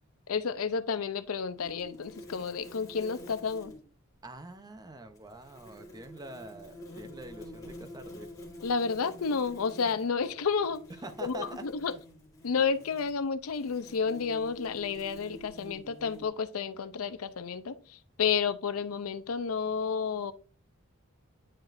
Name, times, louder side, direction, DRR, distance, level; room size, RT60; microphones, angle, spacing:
voice 1, 0.3-3.7 8.6-10.8 11.2-11.9 12.4-20.3, left 5 dB, 80° left, 0.5 m, -31 dB
sound 1, 1.6-3.8 5.2-16.3, left 1 dB, 15° left, 2.3 m, -48 dB
voice 2, 4.2-8.3 10.9-12.0, right 2 dB, 20° right, 0.6 m, -45 dB
9.7 x 4.9 x 2.5 m
head